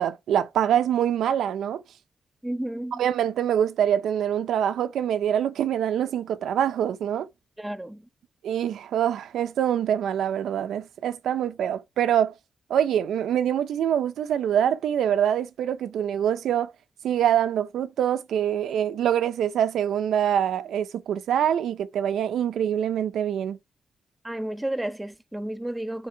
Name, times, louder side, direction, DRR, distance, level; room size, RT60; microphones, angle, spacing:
voice 1, 0.0-1.8 3.0-7.3 8.4-12.3 12.7-16.7 17.0-23.6, right 9 dB, 85° right, 0.8 m, -25 dB
voice 2, 2.4-3.0 7.6-8.1 24.2-26.1, right 1 dB, 10° right, 1.7 m, -32 dB
9.3 x 4.8 x 4.6 m
cardioid pair, 55°, 0 cm